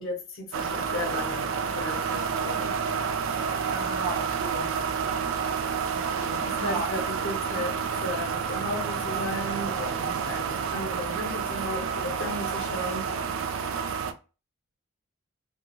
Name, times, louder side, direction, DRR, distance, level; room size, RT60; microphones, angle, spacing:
voice 1, 0.0-2.7 6.5-13.0, left 1 dB, 65° left, 0.9 m, -35 dB
sound 1, 0.5-14.1, right 6 dB, 65° right, 0.3 m, -29 dB
voice 2, 3.7-4.7 5.9-6.9, right 2 dB, 80° right, 0.9 m, -34 dB
2.4 x 2.3 x 2.9 m
head